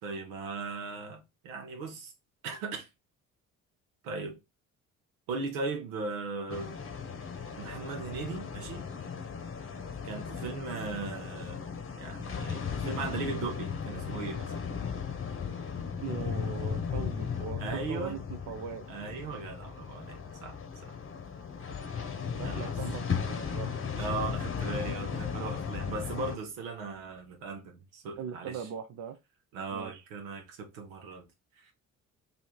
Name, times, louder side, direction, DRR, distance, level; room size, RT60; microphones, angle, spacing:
voice 1, 0.0-2.1 2.4-2.9 4.0-4.4 5.3-6.8 7.6-8.9 10.0-11.6 12.0-14.5 17.6-18.2 18.9-20.9 22.4-22.7 24.0-28.6 29.5-31.3 31.6-31.7, right 4 dB, 75° right, 1.1 m, -38 dB
sound 1, 6.5-26.4, left 6 dB, 30° left, 0.9 m, -36 dB
voice 2, 16.0-18.2 18.5-18.9 22.3-23.7 28.2-29.2 29.7-30.0, right 8 dB, 45° right, 0.6 m, -40 dB
3.4 x 2.7 x 4.3 m
hypercardioid pair, 50°, 42 cm